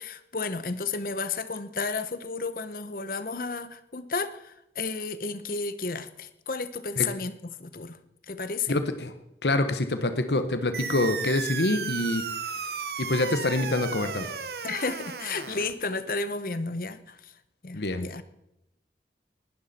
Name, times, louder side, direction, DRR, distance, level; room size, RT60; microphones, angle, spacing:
voice 1, 0.0-8.0 8.3-8.8 14.6-17.3 17.6-18.2, left 4 dB, 50° left, 13 dB, 0.9 m, -32 dB
voice 2, 8.7-9.1 9.4-12.2 13.0-14.3 17.7-18.0, left 2 dB, 75° left, 9 dB, 1.2 m, -26 dB
sound 1, 10.7-15.7, right 5 dB, 65° right, 1.0 m, -34 dB
20.0 x 12.0 x 4.3 m, 0.84 s
head